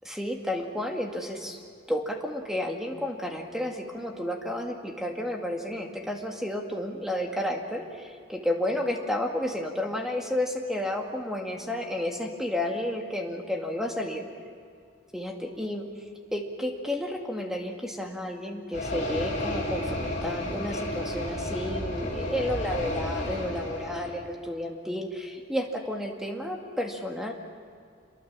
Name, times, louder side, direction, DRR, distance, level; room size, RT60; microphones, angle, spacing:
voice 1, 0.0-1.6 1.9-14.3 15.1-15.8 16.3-27.3, left 1 dB, ahead, 2 dB, 2.0 m, -31 dB
sound 1, 18.7-24.1, left 1 dB, 40° left, 6.5 m, -32 dB
27.0 x 22.5 x 7.5 m, 2.3 s
head